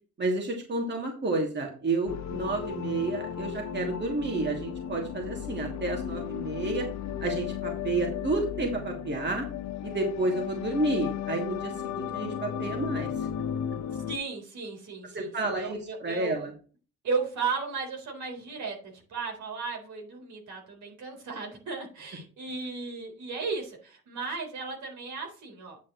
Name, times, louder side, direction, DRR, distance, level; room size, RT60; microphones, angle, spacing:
voice 1, 0.2-6.9 7.2-9.5 9.8-13.1 15.1-16.5, right 2 dB, 35° right, 1 dB, 2.7 m, -30 dB
sound 1, 2.1-14.2, left 9 dB, 65° left, 1.1 m, -35 dB
voice 2, 14.1-16.4 17.0-25.8, right 4 dB, 70° right, 1 dB, 4.0 m, -35 dB
9.6 x 7.4 x 3.1 m, 0.37 s
cardioid pair, 90°, 30 cm